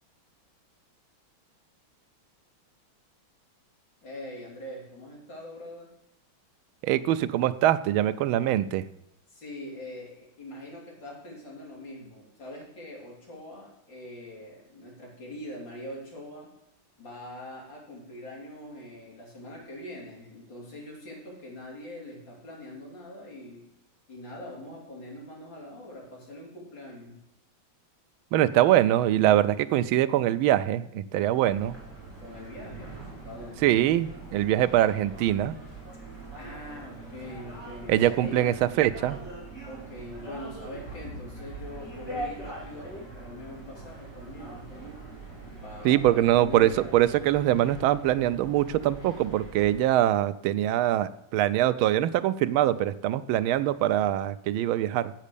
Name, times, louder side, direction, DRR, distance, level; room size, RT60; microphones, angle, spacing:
voice 1, 4.0-5.9 9.3-16.5 17.0-23.6 24.1-27.2 32.2-32.9 33.2-33.7 36.4-38.6 39.6-45.0 45.6-47.0, left 1 dB, 60° left, -3 dB, 4.1 m, -43 dB
voice 2, 6.8-8.8 28.3-31.8 33.6-35.6 37.9-39.2 45.8-55.1, right 13 dB, 80° right, 14 dB, 1.4 m, -23 dB
sound 1, 31.5-49.8, right 2 dB, 10° left, 3.4 m, -42 dB
8.1 x 7.5 x 6.7 m, 0.86 s
omnidirectional pair, 2.3 m